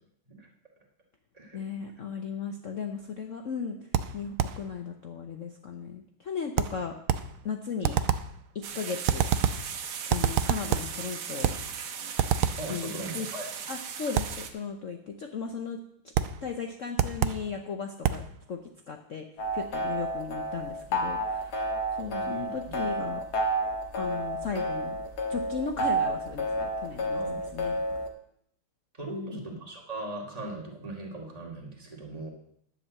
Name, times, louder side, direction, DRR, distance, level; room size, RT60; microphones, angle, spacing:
voice 1, 1.5-3.8 4.1-6.9 7.4-8.0 8.7-9.3 10.1-11.5 12.7-13.3 13.7-15.8 16.4-18.2 18.5-18.6 18.9-19.2 19.5-21.7 22.0-23.2 23.9-25.0 25.3-27.2 27.5-27.8 29.1-29.4, left 6 dB, 75° left, 4 dB, 0.7 m, -36 dB
sound 1, 3.9-4.7 6.6-7.4 7.8-8.4 9.1-9.7 10.1-11.0 11.4-11.7 12.2-12.7 14.2-14.4 16.2-16.4 17.0-17.5 18.0-18.3, right 9 dB, 80° right, 1.4 m, -27 dB
sound 2, 8.6-14.5, right 7 dB, 60° right, 1.4 m, -38 dB
voice 2, 12.6-13.5 22.0-22.7 27.1-27.4 29.0-32.3, right 2 dB, 15° right, -1 dB, 2.2 m, -39 dB
sound 3, 19.4-28.1, right 1 dB, 50° left, 1.7 m, -30 dB
10.5 x 5.6 x 7.5 m, 0.69 s
omnidirectional pair, 2.4 m